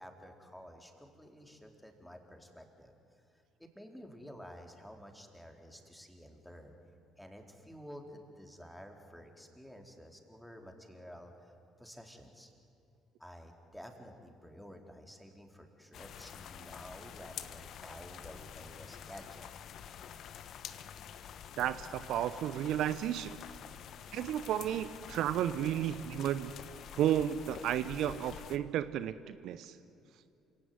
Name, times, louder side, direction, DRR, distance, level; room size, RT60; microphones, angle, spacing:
voice 1, 0.0-2.9 3.6-6.7 7.2-11.5 11.8-12.5 13.2-19.5, equal, 5° left, 3 dB, 4.2 m, -51 dB
sound 1, 15.9-28.6, left 8 dB, 60° left, 1.2 m, -48 dB
voice 2, 21.6-23.4 24.1-26.5 27.0-29.8, right 11 dB, 65° right, 13 dB, 0.8 m, -33 dB
27.5 x 17.5 x 9.8 m, 2.7 s
hypercardioid pair, 55°, 0 cm